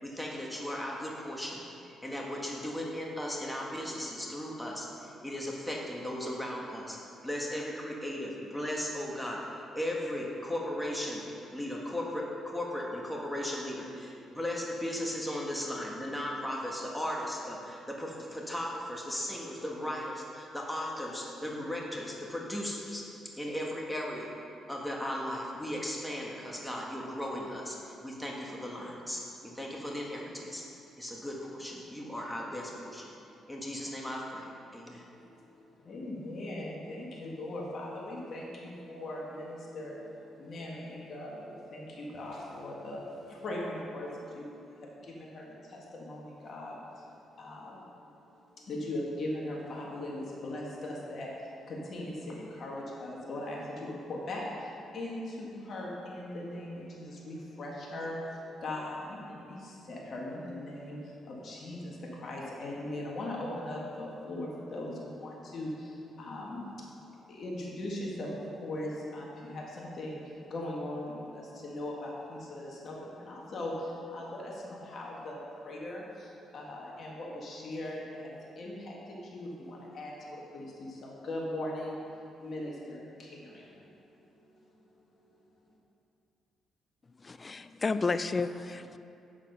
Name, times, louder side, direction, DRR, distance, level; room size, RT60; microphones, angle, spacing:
voice 1, 0.0-1.6 2.0-11.2 11.5-23.1 23.4-24.3 24.7-30.6 31.0-33.1 33.5-35.1, left 1 dB, 5° left, -2 dB, 1.5 m, -36 dB
voice 2, 35.1-83.9 84.3-84.8 85.2-85.4, left 1 dB, 55° left, -3 dB, 1.8 m, -40 dB
voice 3, 87.2-89.0, left 4 dB, 30° left, 11 dB, 0.4 m, -31 dB
8.5 x 7.2 x 5.5 m, 2.7 s
cardioid pair, 90°, 0 cm